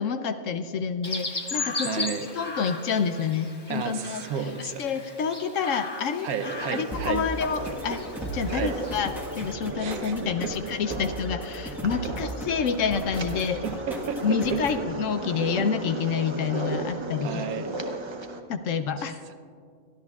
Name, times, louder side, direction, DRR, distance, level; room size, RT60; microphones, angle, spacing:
voice 1, 0.0-6.3 6.7-13.6 14.2-17.6 18.5-19.3, left 6 dB, 65° left, 9 dB, 0.9 m, -28 dB
Chirp tweet, 1.0-9.5, left 3 dB, 20° left, 0.8 m, -37 dB
voice 2, 1.8-2.3 3.7-4.8 6.2-7.2 8.5-8.8 9.8-10.5 13.6-14.2 14.5-14.6 17.2-17.7, right 6 dB, 75° right, 8 dB, 1.2 m, -32 dB
sound 1, 6.4-18.4, right 2 dB, 35° right, 0.4 m, -36 dB
sound 2, 6.9-14.9, right 1 dB, ahead, 1.1 m, -37 dB
23.5 x 13.0 x 2.4 m, 2.3 s
omnidirectional pair, 1.5 m